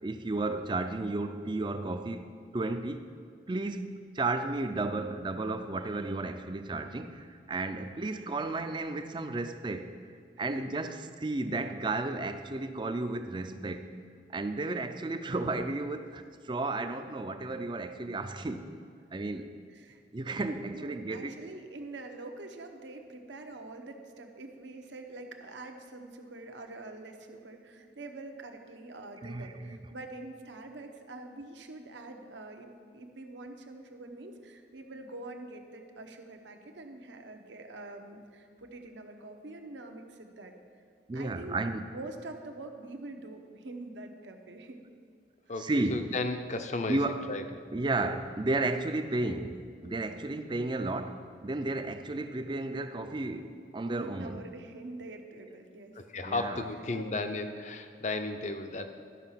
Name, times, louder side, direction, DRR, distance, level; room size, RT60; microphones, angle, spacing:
voice 1, 0.0-3.1 3.5-9.9 10.4-13.9 14.3-18.7 19.1-19.5 20.1-21.3 29.2-29.8 41.1-41.9 45.6-46.1 46.9-47.3 47.7-54.4 56.2-56.7, right 2 dB, 25° right, 0.4 m, -33 dB
voice 2, 19.7-20.0 20.7-40.5 41.1-41.6 41.9-44.8 45.5-45.6 53.8-56.0 56.9-57.5, right 2 dB, 80° right, 0.9 m, -45 dB
voice 3, 45.5-47.0 47.3-47.4 56.0-58.9, left 2 dB, 40° left, 0.6 m, -34 dB
12.5 x 5.6 x 5.7 m
head